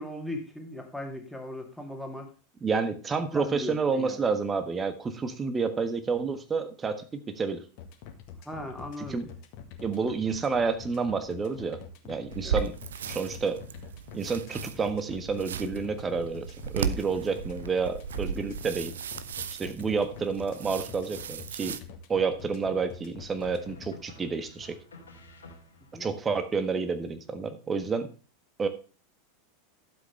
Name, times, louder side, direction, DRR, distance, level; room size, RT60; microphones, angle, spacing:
voice 1, 0.0-2.3 3.3-4.4 8.4-9.2 12.4-12.6 25.9-26.1, left 1 dB, ahead, 2 dB, 2.5 m, -38 dB
voice 2, 2.6-7.6 9.1-9.2 9.8-11.8 12.0-12.8 13.1-13.6 14.1-16.4 16.7-18.9 19.6-21.8 22.1-24.8 25.9-28.1 28.6-28.7, right 5 dB, 20° right, 9 dB, 1.4 m, -29 dB
sound 1, 7.8-23.9, left 8 dB, 45° left, 1.7 m, -45 dB
sound 2, 12.3-21.8, right 7 dB, 65° right, 0.6 m, -36 dB
sound 3, 21.1-21.4 23.4-26.1, left 1 dB, 70° left, 2.8 m, -52 dB
12.0 x 7.8 x 3.3 m, 0.35 s
figure-of-eight pair, 85°, 0 cm